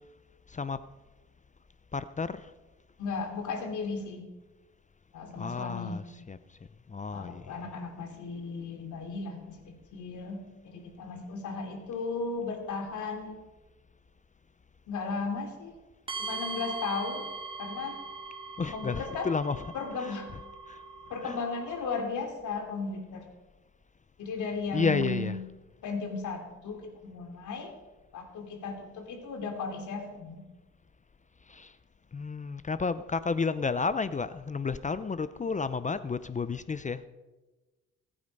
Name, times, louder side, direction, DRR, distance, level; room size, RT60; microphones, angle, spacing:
voice 1, 0.5-0.8 1.9-2.5 5.4-6.6 6.9-7.6 18.6-20.4 20.7-20.8 21.2-21.4 24.7-25.4 31.5-31.8 32.1-37.1, left 4 dB, 25° left, 14 dB, 0.6 m, -32 dB
voice 2, 3.0-4.2 5.1-6.0 7.1-13.4 14.9-15.7 16.2-17.2 17.6-17.9 18.7-19.3 19.7-20.3 21.1-23.2 24.2-25.4 25.8-27.7 28.1-30.4, left 4 dB, 75° left, 3 dB, 3.2 m, -35 dB
sound 1, 16.1-22.0, right 4 dB, 15° right, 2.6 m, -41 dB
20.0 x 8.8 x 5.4 m, 1.2 s
cardioid pair, 90°, 30 cm